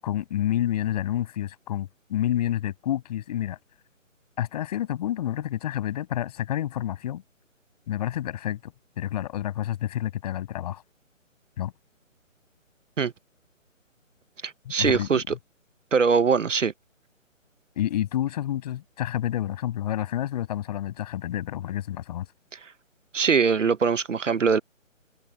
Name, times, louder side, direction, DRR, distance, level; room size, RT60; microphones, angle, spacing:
voice 1, 0.0-3.6 4.4-7.2 7.9-8.7 9.0-10.8 11.6-11.7 14.7-15.4 17.8-22.3, left 12 dB, 30° left, 7.4 m, -29 dB
voice 2, 14.4-15.3 15.9-16.7 22.5-22.7 23.1-24.6, right 5 dB, 65° right, 1.0 m, -22 dB
figure-of-eight pair, 150°, 40 cm